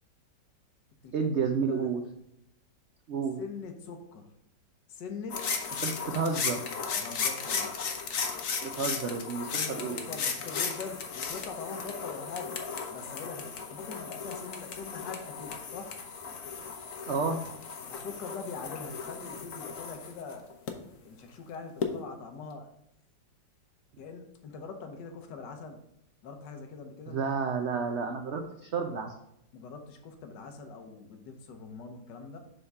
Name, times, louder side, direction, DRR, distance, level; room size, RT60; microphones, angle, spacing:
voice 1, 1.1-2.0 3.1-3.4 5.8-6.7 8.6-10.0 17.1-17.4 27.1-29.1, right 5 dB, 90° right, 5 dB, 0.6 m, -31 dB
voice 2, 3.4-4.3 4.9-5.5 6.0-6.1 6.9-7.8 9.5-12.6 12.9-15.9 17.9-20.5 21.0-22.8 24.0-25.8 26.2-27.2 29.5-32.4, left 5 dB, 75° left, 5 dB, 1.6 m, -43 dB
sound 1, 5.3-20.7 21.8-21.9, left 5 dB, 55° left, 1.0 m, -35 dB
7.1 x 3.6 x 5.3 m, 0.77 s
omnidirectional pair, 2.0 m